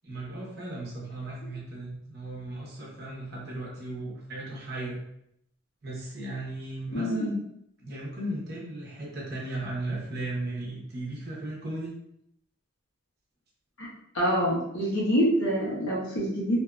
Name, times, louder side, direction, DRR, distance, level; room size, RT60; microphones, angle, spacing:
voice 1, 0.0-5.0 5.8-7.4 7.8-11.9, right 1 dB, 45° right, -4 dB, 0.9 m, -36 dB
voice 2, 6.9-7.2 13.8-13.9 14.1-16.6, equal, 65° left, -6 dB, 1.1 m, -26 dB
2.7 x 2.6 x 2.3 m, 0.74 s
head